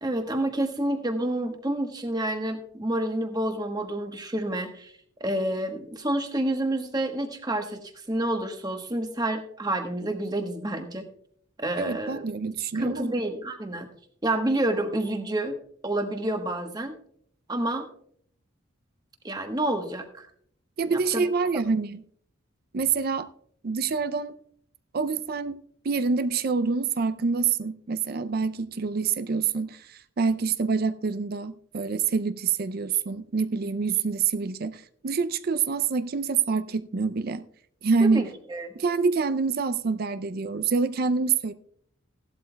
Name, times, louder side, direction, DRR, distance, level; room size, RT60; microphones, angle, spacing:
voice 1, 0.0-4.9 5.2-11.1 11.6-12.2 12.7-13.9 14.2-15.6 15.8-17.0 17.5-17.9 19.2-20.3 20.8-21.2 38.0-38.7, right 1 dB, 20° right, 1.1 m, -29 dB
voice 2, 11.8-13.1 20.8-22.0 22.7-23.3 23.6-24.3 24.9-25.6 25.8-37.4 37.8-38.2 38.8-41.5, right 5 dB, 50° right, 0.4 m, -26 dB
16.0 x 11.5 x 2.3 m
head